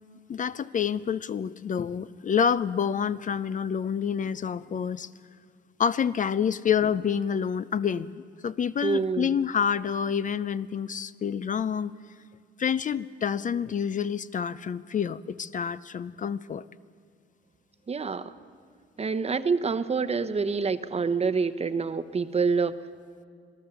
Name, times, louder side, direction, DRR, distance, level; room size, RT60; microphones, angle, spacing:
voice 1, 0.3-5.1 5.8-12.0 12.6-16.6, left 7 dB, 40° left, 15 dB, 0.5 m, -28 dB
voice 2, 8.8-9.3 17.9-18.3 19.0-22.8, right 5 dB, 30° right, 12 dB, 0.9 m, -27 dB
26.5 x 16.5 x 6.9 m, 2.2 s
cardioid pair, 90°, 20 cm